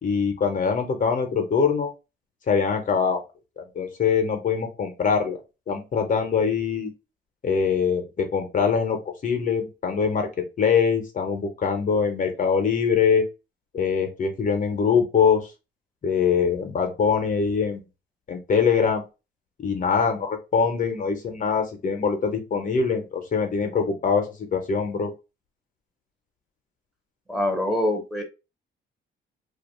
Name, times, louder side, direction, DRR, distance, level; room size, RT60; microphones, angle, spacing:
voice 1, 0.0-1.9 2.5-3.2 3.6-5.4 5.7-6.9 7.4-9.0 9.2-10.3 10.6-13.2 13.7-15.5 16.0-17.8 18.3-19.0 19.6-24.3 24.5-25.1, left 6 dB, 40° left, 5 dB, 0.6 m, -23 dB
voice 2, 27.3-28.2, left 1 dB, ahead, 1 dB, 0.7 m, -24 dB
2.4 x 2.2 x 3.0 m, 0.28 s
cardioid pair, 90°, 20 cm